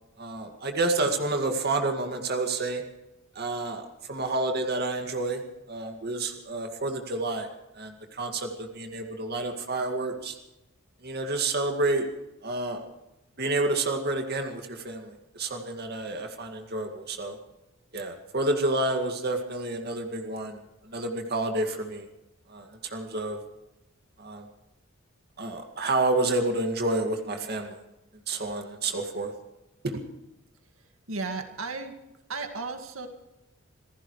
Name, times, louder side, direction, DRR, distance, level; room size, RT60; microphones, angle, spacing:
voice 1, 0.2-2.8 3.4-5.4 5.7-7.5 7.8-10.4 11.0-12.1 12.4-12.8 13.4-17.4 17.9-20.6 20.8-22.1 22.5-23.4 24.2-24.4 25.4-27.8 28.3-29.3 29.8-30.0, right 2 dB, 50° right, 4 dB, 2.1 m, -29 dB
voice 2, 30.7-32.0 32.3-33.1, right 3 dB, 90° right, 5 dB, 2.0 m, -35 dB
27.0 x 15.5 x 3.2 m, 0.96 s
head